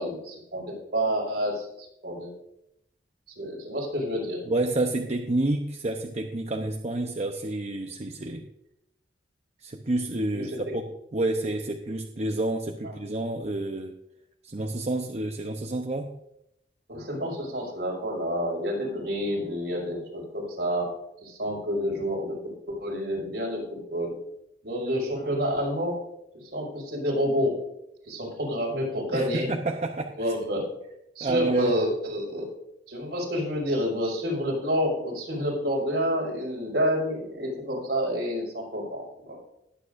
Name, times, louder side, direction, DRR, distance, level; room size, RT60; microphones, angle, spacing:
voice 1, 0.0-2.3 3.4-4.4 10.3-10.4 12.8-12.9 16.9-24.2 24.6-26.0 26.3-27.6 28.1-29.5 30.2-30.6 31.2-32.5 32.9-39.4, equal, 65° right, -3 dB, 5.3 m, -29 dB
voice 2, 4.5-8.5 9.6-10.8 11.1-14.0 14.4-16.2 29.1-30.3 31.2-31.7, right 2 dB, 40° right, 3 dB, 0.8 m, -29 dB
21.5 x 8.5 x 2.6 m, 0.80 s
head